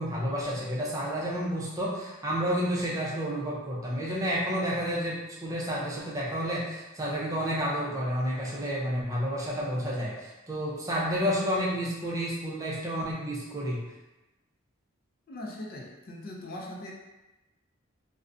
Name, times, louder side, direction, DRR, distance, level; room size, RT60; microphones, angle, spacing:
voice 1, 0.0-13.8, equal, 15° right, -5 dB, 0.5 m, -30 dB
voice 2, 15.3-16.9, left 1 dB, 45° left, -2 dB, 0.4 m, -40 dB
2.4 x 2.1 x 2.5 m, 1.0 s
head